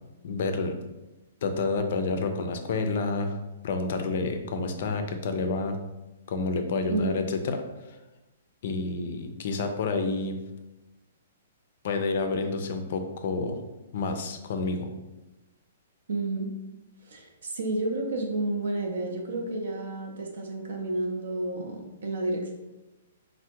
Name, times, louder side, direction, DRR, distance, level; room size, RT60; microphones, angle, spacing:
voice 1, 0.2-0.8 1.4-3.3 3.6-5.8 6.3-7.6 8.6-10.4 11.8-13.6 13.9-14.9, left 3 dB, 50° left, 6 dB, 0.3 m, -29 dB
voice 2, 6.9-7.3 16.1-16.5 17.0-22.5, right 2 dB, 80° right, 1 dB, 0.4 m, -31 dB
3.3 x 2.0 x 2.8 m, 1.0 s
hypercardioid pair, 165°, 0 cm